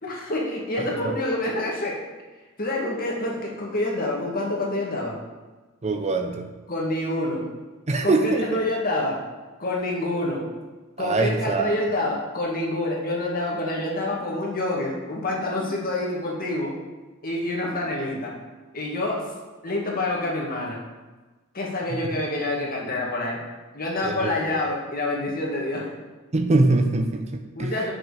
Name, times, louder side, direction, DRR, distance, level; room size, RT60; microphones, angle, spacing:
voice 1, 0.0-2.0 2.6-5.2 6.7-7.5 8.0-9.2 9.6-10.5 11.0-16.8 17.2-18.3 18.7-19.3 19.6-20.8 21.5-23.4 23.7-25.9 27.5-27.9, left 2 dB, 45° left, -2 dB, 2.0 m, -27 dB
voice 2, 5.8-6.5 7.9-8.4 11.0-11.7 24.0-24.5 26.3-27.7, right 2 dB, 30° right, 4 dB, 0.7 m, -23 dB
9.3 x 6.3 x 4.9 m, 1.2 s
head